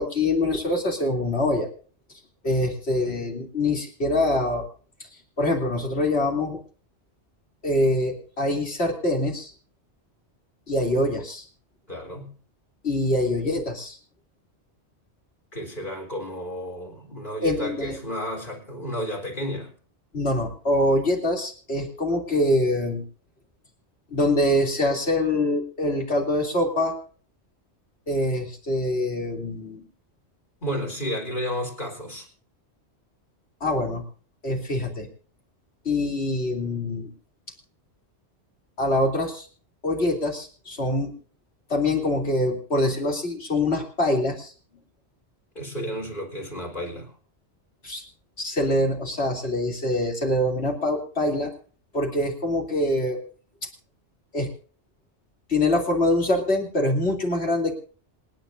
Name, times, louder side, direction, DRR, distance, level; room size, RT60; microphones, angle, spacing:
voice 1, 0.0-1.7 2.4-4.6 5.4-6.6 7.6-9.5 10.7-11.4 12.8-14.0 17.4-18.0 20.1-23.0 24.1-27.0 28.1-29.8 33.6-34.0 34.4-35.1 35.8-37.1 38.8-39.5 39.8-41.1 41.7-44.5 47.8-48.0 48.4-51.5 51.9-53.2 54.3-54.5 55.5-57.8, left 1 dB, 65° left, 2 dB, 3.4 m, -24 dB
voice 2, 11.9-12.4 15.5-19.7 30.6-32.3 45.5-47.1, equal, 45° left, -1 dB, 4.2 m, -32 dB
27.0 x 10.5 x 2.6 m, 0.41 s
omnidirectional pair, 1.2 m